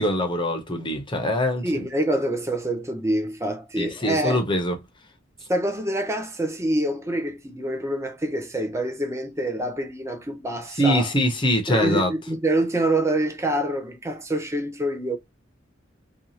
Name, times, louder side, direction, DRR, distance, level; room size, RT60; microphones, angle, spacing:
voice 1, 0.0-1.9 3.8-4.8 10.8-12.1, equal, 25° left, 0.7 m, -23 dB
voice 2, 1.6-4.4 5.5-11.1 11.7-15.2, right 1 dB, 15° right, 0.7 m, -26 dB
2.7 x 2.3 x 2.8 m
head